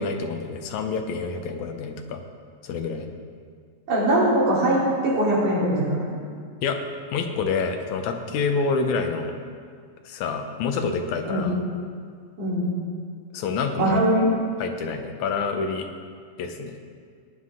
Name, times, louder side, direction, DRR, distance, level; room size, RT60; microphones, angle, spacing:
voice 1, 0.0-2.2 2.6-3.1 6.6-6.8 7.1-9.3 10.1-11.6 13.3-14.0 14.6-15.9 16.4-16.8, left 4 dB, 75° left, 5 dB, 2.3 m, -27 dB
voice 2, 3.9-6.0 11.3-11.5 12.4-12.7 13.8-14.3, right 1 dB, 80° right, -7 dB, 4.6 m, -21 dB
17.5 x 9.6 x 3.8 m, 2.1 s
omnidirectional pair, 3.4 m